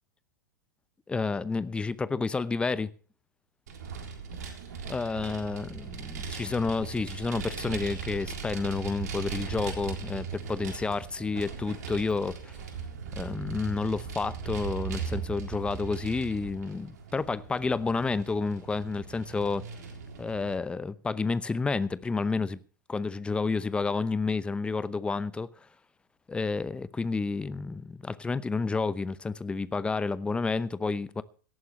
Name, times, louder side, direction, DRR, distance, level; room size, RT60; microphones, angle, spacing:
voice 1, 1.1-2.9 4.9-12.5 13.2-19.7 20.2-22.6 22.9-25.5 26.3-31.2, left 4 dB, 10° left, 0.8 m, -30 dB
Vehicle, 3.7-20.6, right 6 dB, 60° right, 3.7 m, -39 dB
18.0 x 14.5 x 3.2 m
figure-of-eight pair, 100°, 10 cm